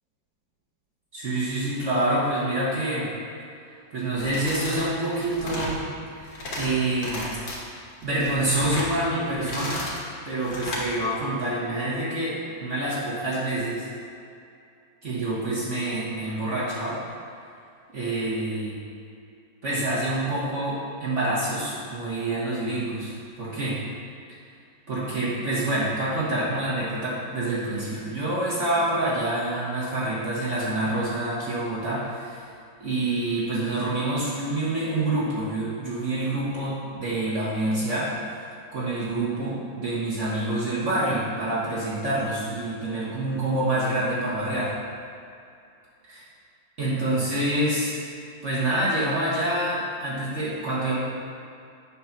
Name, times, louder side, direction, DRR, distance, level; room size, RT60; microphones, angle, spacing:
voice 1, 1.1-3.1 3.9-5.8 6.2-7.3 8.0-9.8 10.2-13.9 15.0-17.0 17.9-18.8 19.6-23.8 24.9-32.5 32.8-38.4 38.7-44.7 46.8-47.9 48.4-51.0, right 1 dB, 45° right, -8 dB, 1.3 m, -27 dB
sound 1, 4.1-4.8 5.1-5.8 6.2-6.7 7.0-7.6 8.0-8.9 9.3-10.0 10.4-10.9, left 1 dB, 65° left, 1.8 m, -33 dB
7.8 x 3.1 x 5.8 m, 2.5 s
omnidirectional pair, 2.0 m